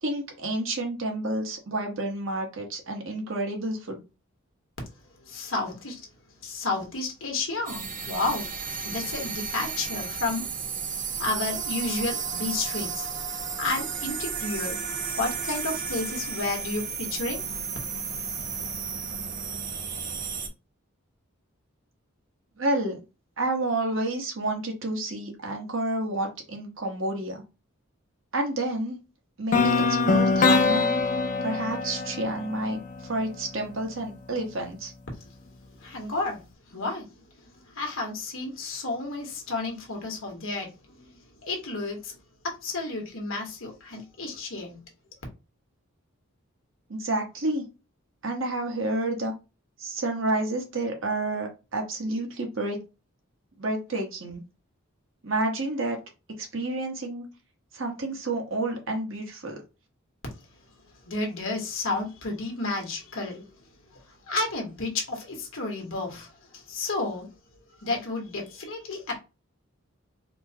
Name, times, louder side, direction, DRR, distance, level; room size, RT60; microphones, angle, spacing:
voice 1, 0.0-4.0 22.6-23.0 23.4-27.4 28.3-29.0 29.4-30.9 31.4-34.9 46.9-47.6 48.2-49.3 49.8-52.8 53.6-54.4 55.2-56.0 56.4-57.3 57.7-59.6, right 2 dB, 65° right, 1.1 m, -29 dB
voice 2, 5.3-6.0 6.4-10.8 11.2-17.5 35.8-36.4 36.7-37.1 37.4-41.1 41.4-42.1 42.4-44.8 61.0-63.4 64.3-67.3 67.8-69.2, left 3 dB, 70° left, 1.3 m, -32 dB
sound 1, 7.7-20.5, right 6 dB, 40° right, 0.6 m, -33 dB
sound 2, 29.5-33.5, left 4 dB, 35° left, 0.4 m, -24 dB
4.4 x 2.2 x 2.8 m
head